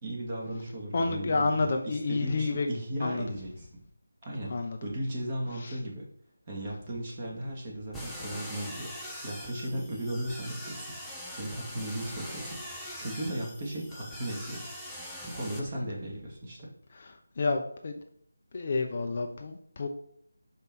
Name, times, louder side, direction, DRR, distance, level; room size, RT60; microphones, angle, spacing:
voice 1, 0.0-3.7 4.2-6.1 6.5-10.9 11.3-14.7 15.3-16.7, right 1 dB, 25° right, -3 dB, 2.2 m, -36 dB
voice 2, 0.9-2.7 3.0-3.2 4.5-4.8 5.6-5.7 15.8-15.9 17.4-18.0 18.5-19.9, left 3 dB, 35° left, 4 dB, 0.7 m, -29 dB
sound 1, 7.9-15.6, equal, ahead, 0.7 m, -42 dB
5.5 x 5.4 x 6.2 m, 0.67 s
figure-of-eight pair, 170°, 0 cm